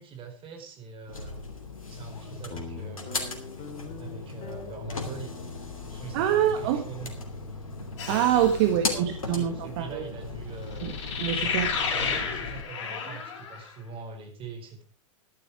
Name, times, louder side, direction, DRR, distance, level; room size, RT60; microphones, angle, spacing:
voice 1, 0.0-1.4 1.9-3.3 4.0-5.4 5.8-7.2 8.6-10.9 11.4-14.8, right 5 dB, 30° right, 4 dB, 4.6 m, -43 dB
sound 1, 1.1-12.6, left 3 dB, 85° left, 2.8 m, -37 dB
Guitar, 2.5-9.2, left 6 dB, 35° left, 2.7 m, -46 dB
voice 2, 6.1-6.8 8.1-10.0 10.8-11.7 12.0-12.1, right 10 dB, 50° right, 7 dB, 1.5 m, -25 dB
sound 2, 8.0-8.7 10.8-13.7, left 6 dB, 60° left, 3.9 m, -31 dB
13.0 x 11.0 x 4.7 m, 0.40 s
figure-of-eight pair, 95°, 17 cm